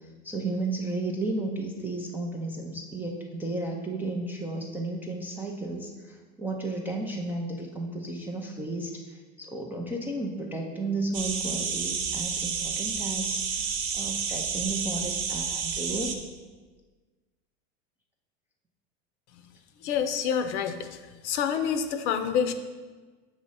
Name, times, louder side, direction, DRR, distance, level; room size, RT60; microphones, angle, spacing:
voice 1, 0.0-13.7 13.9-16.3, right 2 dB, 5° right, -2 dB, 0.3 m, -33 dB
sound 1, 11.1-16.1, right 6 dB, 50° right, 0.8 m, -30 dB
voice 2, 19.8-20.9 21.2-22.5, left 7 dB, 65° left, 9 dB, 0.7 m, -27 dB
6.1 x 3.1 x 5.4 m, 1.4 s
hypercardioid pair, 110°, 36 cm